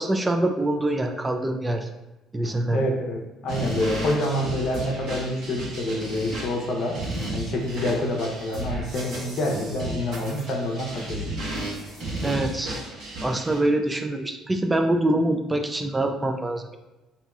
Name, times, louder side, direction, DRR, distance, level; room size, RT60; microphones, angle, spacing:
voice 1, 0.0-1.9 2.3-2.8 12.2-12.8 13.2-16.8, right 1 dB, 20° right, 5 dB, 0.3 m, -24 dB
voice 2, 2.7-7.0 7.3-11.2, left 1 dB, 60° left, 0 dB, 0.6 m, -27 dB
sound 1, 3.5-13.6, right 1 dB, 70° right, 1.2 m, -33 dB
2.8 x 2.7 x 2.2 m, 1.0 s
hypercardioid pair, 60°, 0 cm